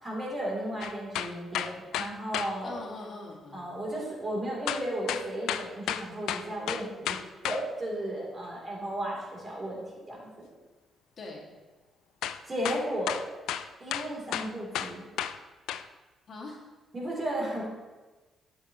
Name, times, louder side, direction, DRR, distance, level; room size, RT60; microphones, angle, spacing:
voice 1, 0.0-2.7 3.5-7.2 7.4-10.5 12.5-13.2 13.8-15.1 16.9-17.7, right 1 dB, 30° right, -3 dB, 3.3 m, -34 dB
sound 1, 0.8-2.5 4.7-7.6 12.2-12.4 12.6-15.4 15.7-15.8, left 10 dB, 85° left, 0.4 m, -32 dB
voice 2, 2.6-3.6 11.2-11.5 16.3-16.6, left 2 dB, 55° left, -3 dB, 2.2 m, -42 dB
12.0 x 7.4 x 3.1 m, 1.2 s
cardioid pair, 90°, 0 cm